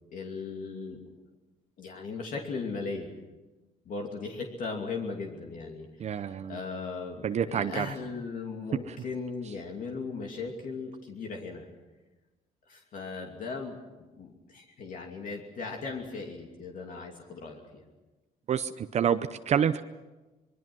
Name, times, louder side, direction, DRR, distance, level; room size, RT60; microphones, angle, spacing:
voice 1, 0.1-1.0 1.8-3.1 3.8-11.7 12.7-17.8, left 4 dB, 55° left, 1 dB, 2.8 m, -38 dB
voice 2, 6.0-6.6 7.2-7.9 8.9-9.0 18.5-19.8, right 8 dB, 45° right, 10 dB, 0.7 m, -28 dB
25.5 x 22.0 x 6.2 m, 1.2 s
cardioid pair, 140°, 16 cm